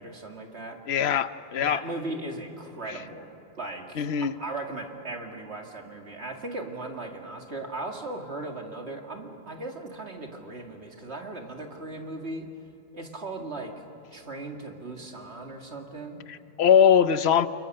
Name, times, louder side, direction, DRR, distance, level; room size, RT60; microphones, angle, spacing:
voice 1, 0.0-0.8 1.6-12.5 12.9-13.7 14.1-16.2, right 2 dB, 90° right, 2 dB, 2.5 m, -37 dB
voice 2, 0.9-1.8 2.9-3.0 4.0-4.3 16.3-17.5, left 8 dB, 75° left, 13 dB, 1.0 m, -21 dB
29.5 x 23.0 x 6.7 m, 2.9 s
omnidirectional pair, 1.1 m